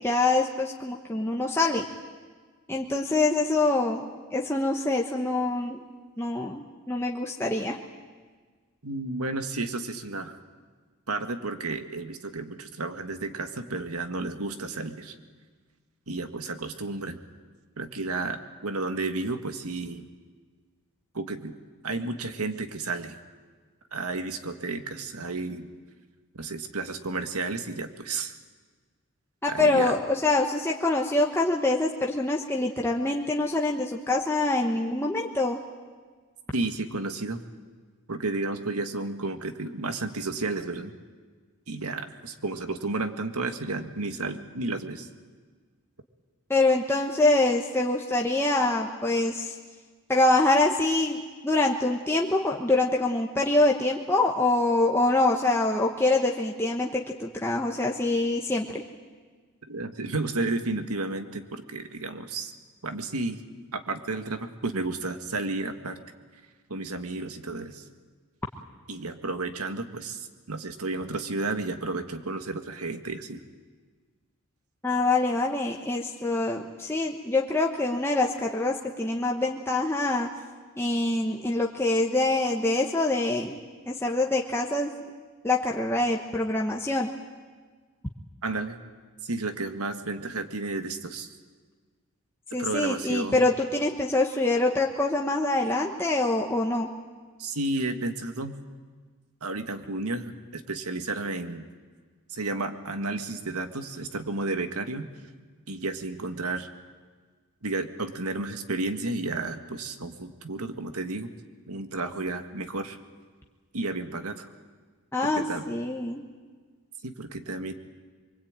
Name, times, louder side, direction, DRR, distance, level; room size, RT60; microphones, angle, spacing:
voice 1, 0.0-1.9 2.7-5.8 6.2-7.8 29.4-35.6 46.5-49.5 50.1-58.8 74.8-80.3 80.8-83.6 83.9-84.9 85.4-87.1 92.5-96.9 115.1-116.2, left 2 dB, 10° left, -1 dB, 1.2 m, -25 dB
voice 2, 8.8-10.4 11.1-15.2 16.1-17.2 17.8-20.0 21.1-21.5 21.8-23.1 23.9-25.7 26.3-28.4 29.5-29.9 36.5-37.4 38.1-41.0 41.7-45.1 59.7-62.5 62.8-63.4 63.7-66.0 66.7-67.8 68.9-73.4 88.4-88.8 89.2-91.3 92.6-93.5 97.4-98.6 99.4-101.7 102.3-105.1 105.7-106.7 107.6-111.3 111.7-113.0 113.7-114.5 115.2-115.7 117.0-117.7, right 2 dB, 90° right, 7 dB, 1.9 m, -32 dB
24.5 x 23.5 x 9.0 m, 1.5 s
head